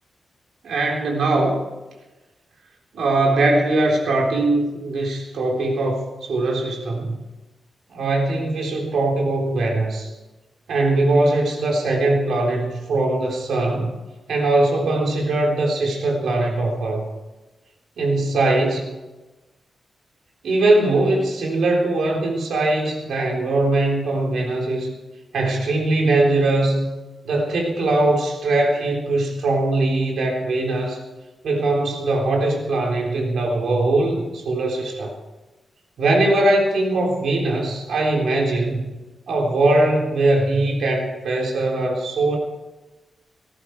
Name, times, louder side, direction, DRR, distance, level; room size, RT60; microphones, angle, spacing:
voice 1, 0.6-1.6 2.9-7.2 7.9-10.1 10.7-13.9 14.3-17.1 18.0-18.9 20.4-24.9 25.3-26.9 27.2-31.0 31.4-35.1 36.0-38.8 39.3-42.4, right 2 dB, 90° right, 0 dB, 3.7 m, -21 dB
18.5 x 14.0 x 4.7 m, 1.1 s
wide cardioid pair, 170°, 0 cm